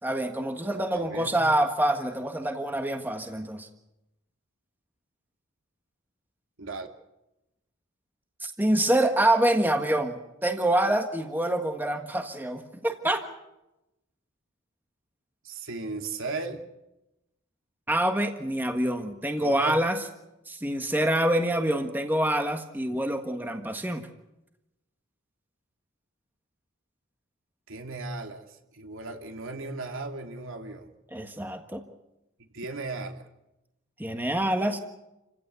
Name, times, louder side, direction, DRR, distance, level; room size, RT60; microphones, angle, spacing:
voice 1, 0.0-3.7 8.4-13.2 17.9-20.0 20.5-24.1 31.1-31.8 34.0-34.8, right 1 dB, 10° right, 5 dB, 1.5 m, -26 dB
voice 2, 0.6-1.4 6.6-6.9 15.4-16.7 19.4-19.8 27.7-30.9 32.4-33.3, right 3 dB, 70° right, 4 dB, 2.8 m, -36 dB
29.0 x 16.5 x 8.3 m, 0.94 s
head